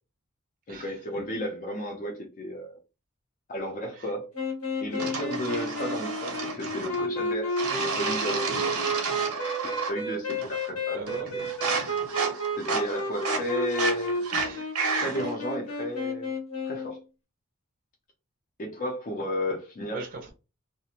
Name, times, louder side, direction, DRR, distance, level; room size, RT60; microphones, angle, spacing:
voice 1, 0.7-2.7 3.5-4.3 4.8-8.8 9.6-11.0 11.3-11.5 12.6-14.2 14.9-16.3 16.6-17.0 18.6-20.1, equal, 35° left, 0.5 m, -33 dB
sound 1, 4.3-17.0, equal, 85° left, 0.8 m, -32 dB
sound 2, 5.0-7.0 7.6-10.0 10.3-10.8 11.1-15.4, right 4 dB, 90° right, 0.7 m, -31 dB
voice 2, 10.9-11.3 14.3-15.2 19.9-20.3, right 3 dB, 40° right, 0.5 m, -39 dB
2.4 x 2.0 x 2.8 m
head